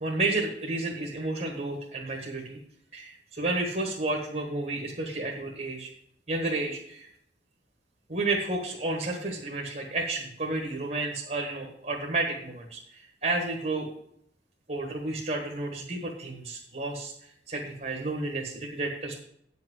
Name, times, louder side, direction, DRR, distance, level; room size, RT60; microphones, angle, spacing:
voice 1, 0.0-2.6 2.9-5.9 6.3-7.1 8.1-13.9 14.7-17.1 17.5-19.2, right 2 dB, 45° right, 1 dB, 1.6 m, -31 dB
8.9 x 5.9 x 7.8 m, 0.70 s
head